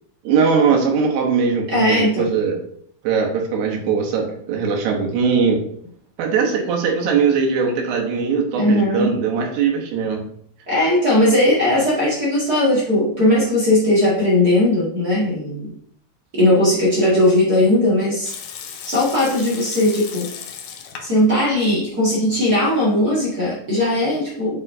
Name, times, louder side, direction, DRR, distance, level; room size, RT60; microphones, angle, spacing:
voice 1, 0.2-2.6 3.0-5.6 6.2-10.3, right 5 dB, 85° right, 1 dB, 3.1 m, -20 dB
voice 2, 1.7-2.3 8.6-9.2 10.7-15.7 16.3-18.3 18.8-20.3 21.0-24.6, left 1 dB, 40° right, -8 dB, 1.5 m, -18 dB
Water tap faucet / Sink (filling or washing) / Liquid, 18.2-21.3 21.6-21.7 22.3-22.9, left 7 dB, 85° left, 1.7 m, -36 dB
8.0 x 5.1 x 2.7 m, 0.66 s
omnidirectional pair, 4.6 m